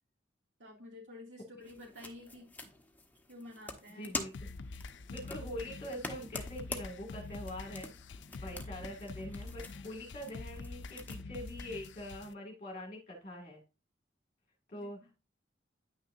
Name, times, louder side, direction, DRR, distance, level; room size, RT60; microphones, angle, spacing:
voice 1, 0.6-2.5 3.3-4.1 14.7-14.9, left 1 dB, 75° right, -1 dB, 2.4 m, -50 dB
sound 1, 1.6-11.2, left 2 dB, 10° left, 1.2 m, -46 dB
voice 2, 4.0-4.3 5.1-7.9 8.4-13.6 14.7-15.2, left 1 dB, 35° left, 0 dB, 2.1 m, -43 dB
sound 2, 4.3-12.3, left 3 dB, 75° left, 0.5 m, -46 dB
9.7 x 6.4 x 2.6 m, 0.28 s
head